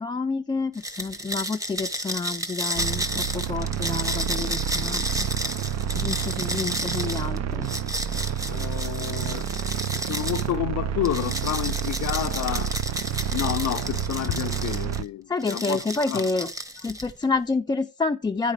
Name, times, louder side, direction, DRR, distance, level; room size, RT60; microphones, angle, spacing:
voice 1, 0.0-5.3 5.9-7.7 15.3-16.5 16.8-18.5, left 4 dB, 15° left, 0.4 m, -28 dB
sound 1, 0.8-10.5 11.1-15.0 15.4-17.2, right 1 dB, 10° right, 0.9 m, -32 dB
sound 2, 2.7-15.0, right 9 dB, 65° right, 0.5 m, -29 dB
voice 2, 8.5-9.5 10.0-12.7 13.3-16.3, left 13 dB, 85° left, 0.5 m, -30 dB
9.9 x 5.0 x 4.7 m
wide cardioid pair, 150°, 29 cm